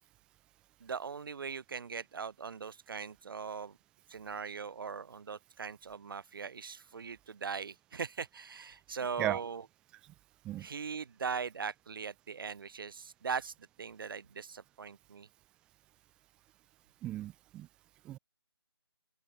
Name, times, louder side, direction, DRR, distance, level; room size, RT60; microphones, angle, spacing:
voice 1, 0.8-3.8 4.1-9.6 10.6-15.3, right 6 dB, 55° right, 0.7 m, -40 dB
voice 2, 17.0-17.7 18.0-18.2, right 13 dB, 5° right, 0.4 m, -35 dB
open air
figure-of-eight pair, 155°, 14 cm